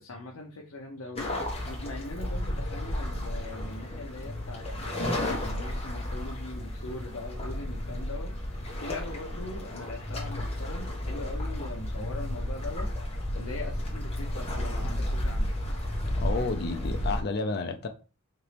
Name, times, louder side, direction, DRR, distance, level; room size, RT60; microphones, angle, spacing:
voice 1, 0.0-12.9 13.3-15.5, left 2 dB, 75° left, 0.7 m, -41 dB
sound 1, 1.2-17.2, left 1 dB, 30° left, 1.3 m, -32 dB
voice 2, 16.2-17.9, left 3 dB, 50° left, 0.4 m, -31 dB
4.4 x 2.9 x 3.3 m
head